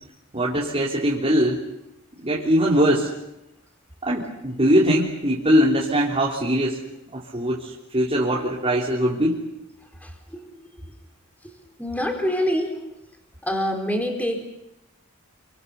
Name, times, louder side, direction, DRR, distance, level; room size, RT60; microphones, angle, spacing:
voice 1, 0.3-1.6 2.2-3.1 4.0-6.8 7.1-9.4, equal, 30° right, -5 dB, 3.4 m, -21 dB
voice 2, 10.0-10.5 11.8-12.8 13.4-14.4, equal, 5° left, 2 dB, 4.2 m, -26 dB
29.5 x 25.0 x 6.9 m, 0.91 s
head